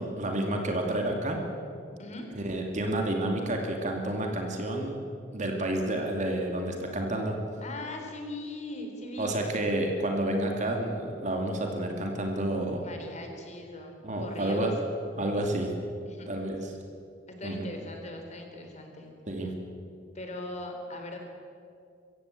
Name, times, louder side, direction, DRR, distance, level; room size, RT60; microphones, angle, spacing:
voice 1, 0.0-1.4 2.4-5.0 5.3-7.4 9.2-12.8 14.0-14.7 15.1-15.7 16.3-16.7 17.4-17.7 19.3-19.5, right 1 dB, 40° right, 2 dB, 2.5 m, -30 dB
voice 2, 7.6-9.4 12.8-14.7 16.1-16.3 17.4-19.1 20.1-21.2, left 2 dB, 40° left, 3 dB, 3.8 m, -40 dB
23.5 x 15.5 x 8.1 m, 2.4 s
head